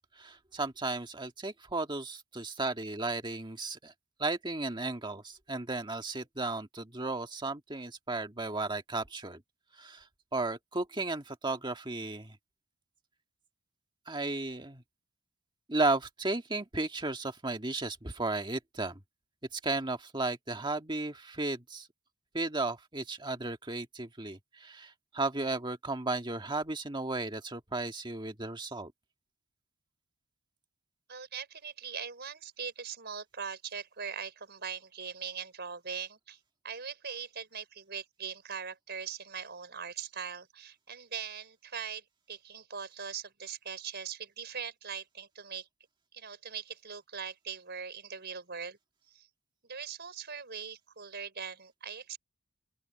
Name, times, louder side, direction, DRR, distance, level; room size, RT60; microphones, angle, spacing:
voice 1, 0.2-3.9 4.2-9.4 9.8-10.0 10.3-12.4 14.1-14.8 15.7-19.0 19.5-21.9 22.3-28.9, right 2 dB, 20° right, 1.7 m, -34 dB
voice 2, 31.1-36.4 36.6-45.7 46.1-48.8 49.1-49.3 49.7-52.2, right 6 dB, 50° right, 5.4 m, -41 dB
open air
head